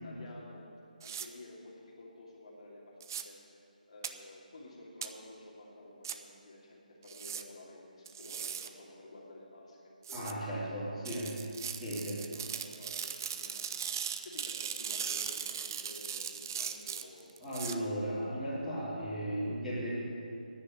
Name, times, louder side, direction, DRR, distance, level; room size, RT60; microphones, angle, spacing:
voice 1, 0.0-0.6 1.0-3.0 3.2-3.3 3.9-9.8 10.1-11.3 12.2-13.8 14.2-17.3, left 2 dB, 45° left, -4 dB, 2.6 m, -51 dB
sound 1, 1.0-1.3 3.0-3.2 4.0-4.1 5.0-5.1 6.0-6.1 7.1-7.4 8.1-8.7 10.0-10.3 11.0-17.7, right 8 dB, 25° right, 0.4 m, -39 dB
voice 2, 10.1-11.3 11.8-12.2 17.4-19.9, equal, ahead, -16 dB, 3.4 m, -36 dB
9.8 x 9.2 x 9.8 m, 2.6 s
figure-of-eight pair, 170°, 5 cm